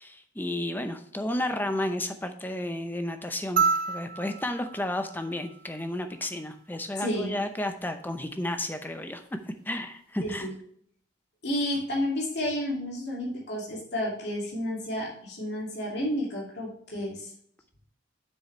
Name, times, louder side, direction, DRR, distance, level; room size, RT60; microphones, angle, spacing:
voice 1, 0.0-9.2 9.7-10.5, left 1 dB, 10° left, 7 dB, 0.6 m, -32 dB
sound 1, 3.6-6.1 7.7-7.8, right 5 dB, 45° right, 0.6 m, -30 dB
voice 2, 7.0-7.4 10.2-10.5 11.4-17.3, left 1 dB, 60° left, -4 dB, 2.5 m, -31 dB
7.4 x 6.4 x 3.2 m, 0.64 s
head